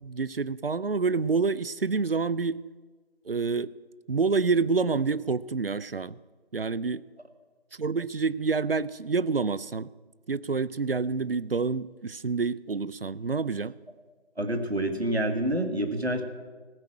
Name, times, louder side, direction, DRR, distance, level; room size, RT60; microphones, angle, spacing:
voice 1, 0.0-2.6 3.2-3.7 4.1-6.2 6.5-7.0 7.7-9.9 10.3-13.7, right 4 dB, 65° right, 19 dB, 0.5 m, -28 dB
voice 2, 14.4-16.2, right 1 dB, 80° right, 6 dB, 1.8 m, -27 dB
15.0 x 6.2 x 8.7 m, 1.4 s
figure-of-eight pair, 175°, 31 cm